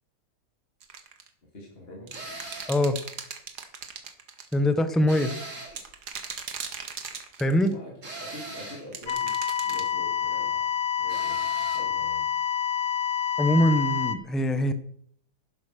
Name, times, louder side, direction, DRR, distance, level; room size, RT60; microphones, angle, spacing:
sound 1, 0.8-1.3 2.1-4.5 5.7-7.7 8.9-9.9, right 6 dB, 70° right, 2.0 m, -38 dB
voice 1, 1.4-2.1 7.6-7.9 8.2-10.6 11.0-12.3, left 1 dB, 35° left, -2 dB, 3.2 m, -45 dB
sound 2, 2.1-2.8 5.1-5.9 8.0-8.9 11.1-11.9, right 2 dB, 45° right, 3.2 m, -40 dB
voice 2, 4.5-5.3 7.4-7.7 13.4-14.7, left 1 dB, ahead, 11 dB, 0.5 m, -22 dB
sound 3, 9.1-14.2, left 9 dB, 85° left, 1.7 m, -28 dB
11.5 x 10.0 x 6.4 m, 0.64 s
omnidirectional pair, 1.9 m